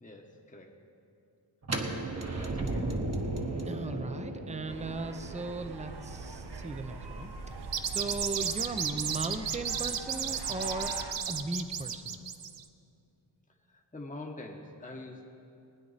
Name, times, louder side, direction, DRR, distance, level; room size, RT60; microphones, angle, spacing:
voice 1, 0.0-0.8 2.3-3.0 3.8-3.9 13.7-15.3, left 2 dB, 20° left, 1 dB, 1.1 m, -45 dB
sound 1, 1.6-7.5, right 2 dB, 35° right, 1.2 m, -36 dB
voice 2, 2.6-3.0 3.7-7.3 7.9-10.9 11.3-12.2, right 2 dB, 15° right, 8 dB, 0.6 m, -37 dB
sound 2, 4.7-11.1, right 3 dB, 60° right, 0.9 m, -43 dB
sound 3, 7.6-12.6, right 8 dB, 85° right, 0.7 m, -33 dB
20.0 x 9.7 x 4.1 m, 2.5 s
wide cardioid pair, 95°, 43 cm